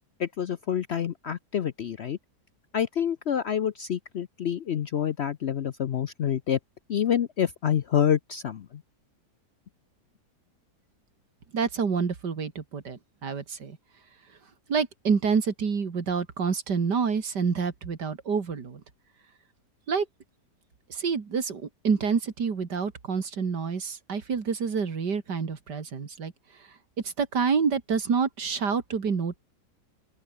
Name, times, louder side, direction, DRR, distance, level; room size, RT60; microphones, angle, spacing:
voice 1, 0.2-2.2 2.7-6.6 6.9-8.8, left 9 dB, 60° left, 0.7 m, -27 dB
voice 2, 11.5-13.8 14.7-18.8 19.9-20.1 20.9-26.3 27.0-29.4, right 5 dB, 85° right, 2.9 m, -28 dB
open air
omnidirectional pair, 1.8 m